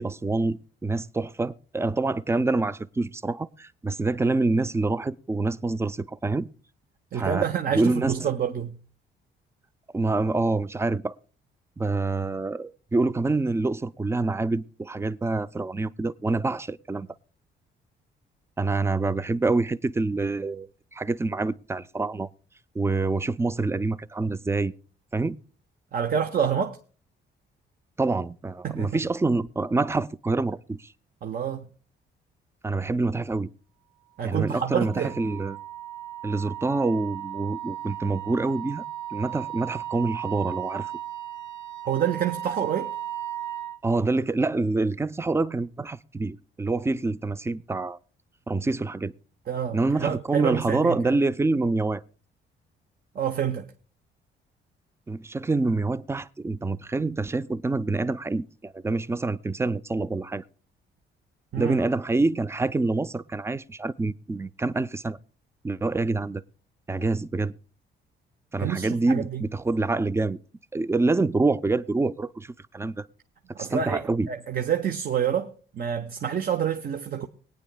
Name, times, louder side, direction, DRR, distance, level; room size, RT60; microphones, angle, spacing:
voice 1, 0.0-6.5 7.1-7.5 7.7-8.3 9.9-11.1 11.8-17.1 18.6-22.3 22.7-24.7 25.1-25.4 28.0-30.9 32.6-33.5 34.2-35.6 36.2-38.8 39.1-40.9 43.8-48.0 48.5-49.1 49.7-52.0 55.1-60.4 61.6-65.2 65.6-66.4 66.9-67.5 68.5-70.4 70.7-73.1 73.6-74.3, right 3 dB, 15° right, 0.5 m, -26 dB
voice 2, 7.1-8.8 25.9-26.8 28.6-29.0 31.2-31.7 34.2-35.2 41.8-42.9 49.5-51.0 53.1-53.7 61.5-61.8 68.6-69.5 73.5-77.3, right 8 dB, 50° right, 0.8 m, -28 dB
Wind instrument woodwind instrument, 34.3-43.8, right 12 dB, 65° right, 1.2 m, -36 dB
24.0 x 9.1 x 2.2 m
cardioid pair, 90°, 20 cm